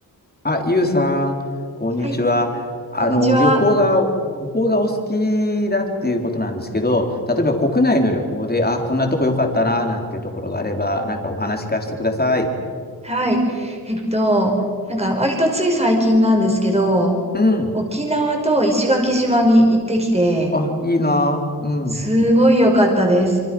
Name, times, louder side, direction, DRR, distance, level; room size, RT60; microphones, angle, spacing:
voice 1, 0.4-1.4 1.8-4.1 4.4-12.5 17.3-17.7 20.5-22.0, left 1 dB, 25° left, 2 dB, 3.8 m, -20 dB
voice 2, 3.0-3.6 13.0-14.6 14.9-17.2 17.7-20.6 21.9-23.4, equal, 15° right, 1 dB, 4.9 m, -18 dB
26.5 x 25.0 x 6.1 m, 2.1 s
wide cardioid pair, 75°, 39 cm